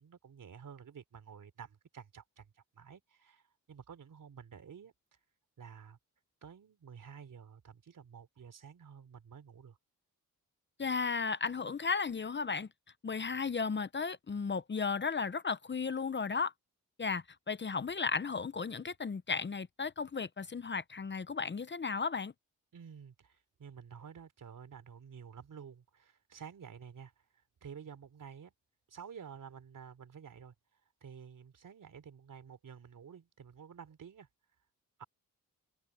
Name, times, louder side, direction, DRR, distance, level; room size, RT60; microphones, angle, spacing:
voice 1, 0.0-4.9 5.6-6.0 6.4-9.8 22.7-27.1 27.6-28.5 28.9-30.5 31.0-34.3 35.0-35.1, right 7 dB, 70° right, 3.5 m, -51 dB
voice 2, 10.8-12.7 13.0-16.5 17.0-22.3, left 5 dB, 35° left, 0.8 m, -34 dB
open air
cardioid pair, 85°, 34 cm